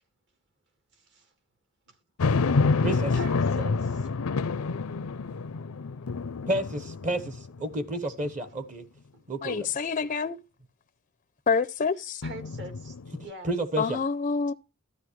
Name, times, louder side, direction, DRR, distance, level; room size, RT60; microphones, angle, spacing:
voice 1, 0.9-1.3 1.9-2.0 3.2-4.1 9.1-9.3 12.2-13.0 13.2-13.5, right 2 dB, 55° right, 1.9 m, -43 dB
sound 1, 2.2-7.7 8.2-8.3 12.2-13.3, left 4 dB, 85° left, 0.5 m, -28 dB
voice 2, 2.8-3.2 6.5-8.8 9.3-9.7 13.4-14.0, right 1 dB, 35° right, 1.1 m, -30 dB
voice 3, 9.4-10.4 11.5-12.2 13.8-14.5, left 5 dB, 35° left, 0.4 m, -27 dB
12.5 x 9.9 x 3.2 m
head